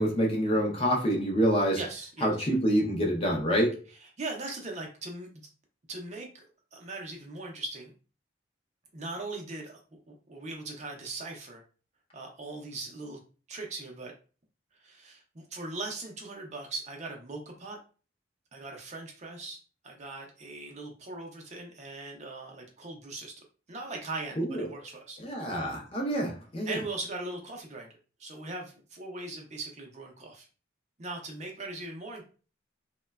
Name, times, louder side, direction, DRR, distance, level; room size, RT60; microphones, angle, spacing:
voice 1, 0.0-1.8 2.2-3.8 24.4-24.7 25.2-26.8, equal, 30° left, 0 dB, 0.5 m, -27 dB
voice 2, 1.7-2.5 4.0-5.3 5.9-6.4 6.7-7.9 8.9-9.8 10.1-11.6 12.1-13.2 13.5-14.1 14.8-17.8 18.5-19.6 19.8-23.3 23.7-25.2 26.7-27.9 28.2-30.5 31.0-32.2, right 2 dB, 35° right, 1 dB, 0.5 m, -39 dB
3.0 x 2.1 x 2.2 m, 0.36 s
head